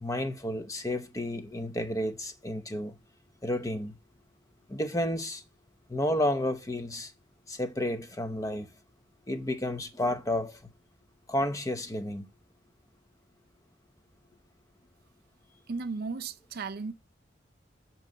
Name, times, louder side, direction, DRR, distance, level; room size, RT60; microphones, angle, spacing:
voice 1, 0.0-3.0 3.4-4.0 4.7-5.4 5.9-7.1 7.5-8.7 9.3-10.6 11.3-12.3, left 1 dB, 20° left, 0.8 m, -31 dB
voice 2, 15.7-16.9, right 4 dB, 55° right, 0.5 m, -35 dB
9.0 x 3.0 x 6.5 m
head